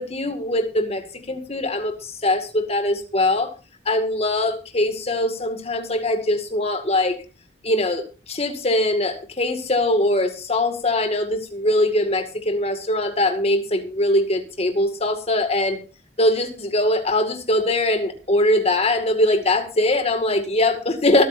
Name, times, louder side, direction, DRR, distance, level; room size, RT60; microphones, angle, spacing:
voice 1, 0.0-3.5 3.9-7.2 7.6-15.8 16.2-21.2, left 1 dB, 35° left, 7 dB, 2.1 m, -22 dB
24.0 x 8.6 x 2.6 m, 0.31 s
head